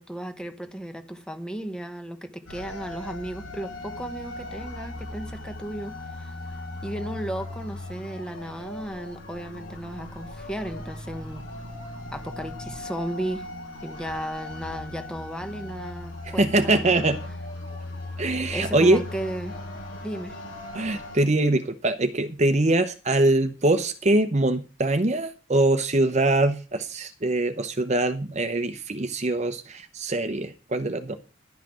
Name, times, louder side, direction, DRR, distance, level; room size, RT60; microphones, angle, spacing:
voice 1, 0.0-6.3 6.8-11.4 12.1-13.5 13.8-16.9 18.5-19.6 20.0-20.4, right 1 dB, 5° left, 1.1 m, -35 dB
sound 1, 2.5-21.2, left 1 dB, 90° left, 4.3 m, -38 dB
voice 2, 16.2-17.3 18.2-19.0 20.7-31.2, right 2 dB, 35° right, 0.8 m, -23 dB
11.5 x 5.8 x 7.5 m
head